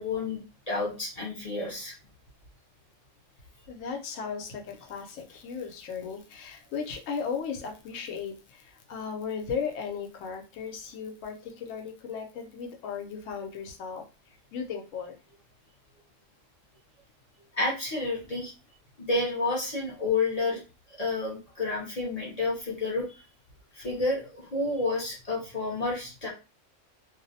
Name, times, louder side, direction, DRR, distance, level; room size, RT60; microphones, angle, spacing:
voice 1, 0.0-1.9 17.6-18.5 19.0-20.6 21.0-23.2 23.7-26.3, left 3 dB, 40° left, -4 dB, 0.6 m, -30 dB
voice 2, 3.7-14.0 14.5-15.2, left 6 dB, 90° left, 4 dB, 1.0 m, -36 dB
2.5 x 2.0 x 2.6 m, 0.32 s
omnidirectional pair, 1.3 m